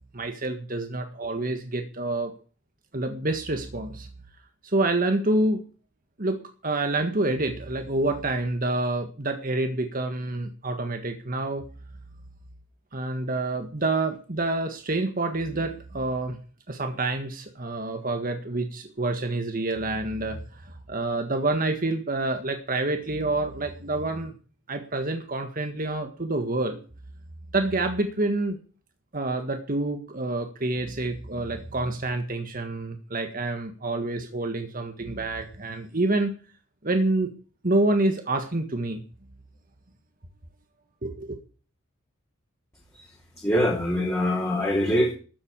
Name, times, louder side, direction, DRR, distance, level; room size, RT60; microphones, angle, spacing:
voice 1, 0.1-2.3 2.9-4.1 4.6-5.6 6.2-11.6 12.9-16.4 16.7-24.3 24.7-26.8 27.5-28.6 29.1-36.3 36.8-37.3 37.6-39.0 41.0-41.4, right 2 dB, 40° right, 6 dB, 1.6 m, -27 dB
voice 2, 43.4-45.1, equal, 15° left, -3 dB, 3.1 m, -23 dB
13.5 x 8.0 x 8.7 m, 0.38 s
head